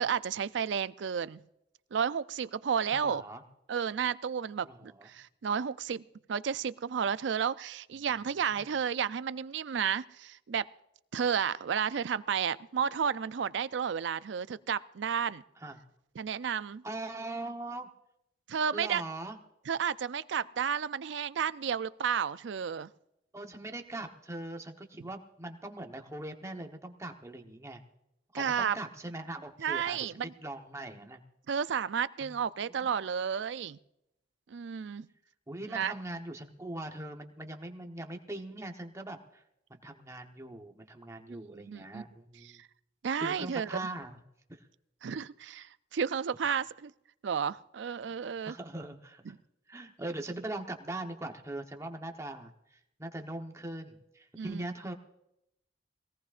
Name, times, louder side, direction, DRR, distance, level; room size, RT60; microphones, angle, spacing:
voice 1, 0.0-1.4 1.9-3.2 3.7-6.0 6.3-10.7 11.1-15.4 16.2-16.8 18.5-19.0 19.7-22.9 28.3-28.8 29.6-30.3 31.5-33.8 34.5-35.1 35.7-35.9 41.3-42.0 42.4-42.7 43.0-43.8 45.0-46.9 47.2-48.6 54.4-54.6, right 7 dB, 70° right, 16 dB, 0.4 m, -32 dB
voice 2, 2.9-3.4 4.6-5.1 8.5-8.7 15.6-15.8 16.8-17.9 18.7-19.4 23.3-27.8 28.3-31.2 32.2-32.3 32.8-32.9 35.5-39.4 39.7-42.6 43.2-44.2 44.5-44.7 48.4-49.2 49.7-54.9, right 2 dB, 15° right, 4 dB, 1.1 m, -41 dB
22.5 x 17.5 x 2.5 m, 0.82 s
head